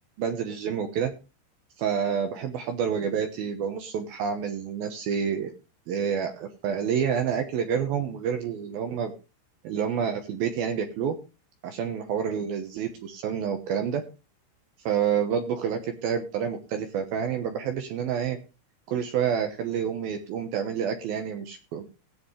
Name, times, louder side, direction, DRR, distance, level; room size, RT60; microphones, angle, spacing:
voice 1, 0.2-1.1 1.8-5.5 5.9-9.1 9.6-11.2 11.6-14.0 14.9-18.4 18.9-21.8, right 7 dB, 80° right, 5 dB, 2.2 m, -28 dB
17.0 x 8.0 x 3.3 m, 0.30 s
omnidirectional pair, 5.8 m